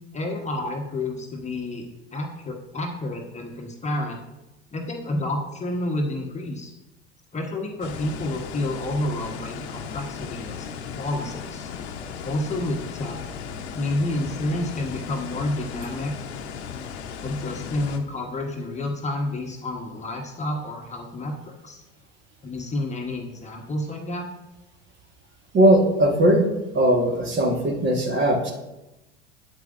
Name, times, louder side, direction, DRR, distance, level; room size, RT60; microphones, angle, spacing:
voice 1, 0.1-4.2 4.7-6.7 7.3-10.7 10.9-11.7 12.2-13.2 13.7-16.1 17.2-21.8 22.4-24.2, left 1 dB, 20° left, 1 dB, 1.2 m, -29 dB
sound 1, 7.8-18.0, left 7 dB, 70° left, 0.9 m, -36 dB
voice 2, 25.5-26.5 26.7-28.5, right 1 dB, 35° right, 2 dB, 1.6 m, -19 dB
8.4 x 8.1 x 2.6 m, 0.98 s
hypercardioid pair, 80°, 34 cm